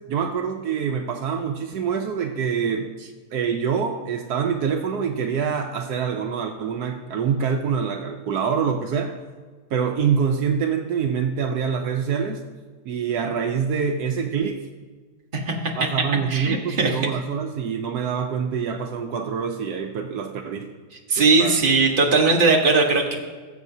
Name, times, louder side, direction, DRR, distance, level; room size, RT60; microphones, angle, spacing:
voice 1, 0.1-2.9 3.3-9.2 9.7-12.4 12.9-14.7 15.8-20.7 21.2-21.6, right 6 dB, 85° right, 5 dB, 0.8 m, -25 dB
voice 2, 15.3-15.7 16.3-17.0 21.1-23.2, right 3 dB, 30° right, 1 dB, 1.0 m, -19 dB
19.0 x 7.5 x 2.7 m, 1.5 s
omnidirectional pair, 2.4 m